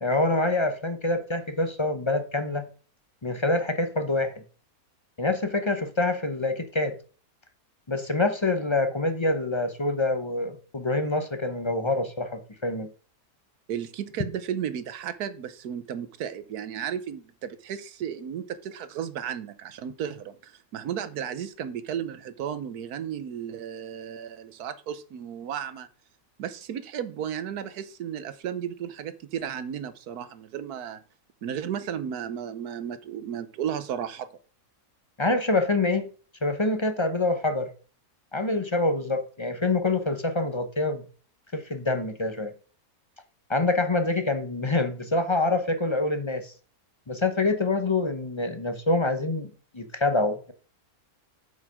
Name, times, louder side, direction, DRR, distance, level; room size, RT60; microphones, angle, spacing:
voice 1, 0.0-2.7 3.2-4.3 5.2-6.9 7.9-12.9 35.2-36.1 36.4-37.7 38.3-41.0 41.5-42.5 43.5-46.5 47.1-50.5, left 2 dB, 30° left, 0.6 m, -26 dB
voice 2, 13.7-25.9 26.4-31.0 31.4-34.3, right 9 dB, 90° right, 1.4 m, -34 dB
7.9 x 5.4 x 4.9 m
omnidirectional pair, 1.6 m